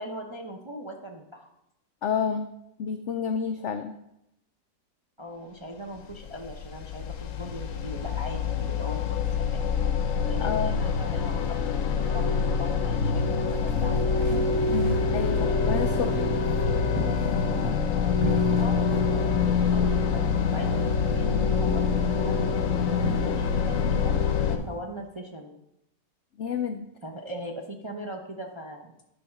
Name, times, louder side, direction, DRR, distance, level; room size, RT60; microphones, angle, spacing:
voice 1, 0.0-1.5 5.2-9.8 10.3-11.4 12.1-14.1 18.6-20.2 20.5-24.1 24.5-25.6 27.0-28.9, equal, 30° right, 1 dB, 0.5 m, -40 dB
voice 2, 2.0-2.5 2.8-3.9 10.4-10.8 14.7-16.3 17.2-17.8 26.4-26.9, left 6 dB, 75° left, 8 dB, 0.6 m, -30 dB
sound 1, 6.1-24.6, left 5 dB, 60° left, 1.0 m, -25 dB
sound 2, 13.5-15.2 15.7-16.3 17.0-18.0 18.2-19.0 19.4-20.0 20.5-21.0 21.7-22.1 23.0-23.7 23.9-24.1, right 8 dB, 65° right, 1.0 m, -40 dB
11.0 x 4.2 x 5.8 m, 0.82 s
omnidirectional pair, 1.8 m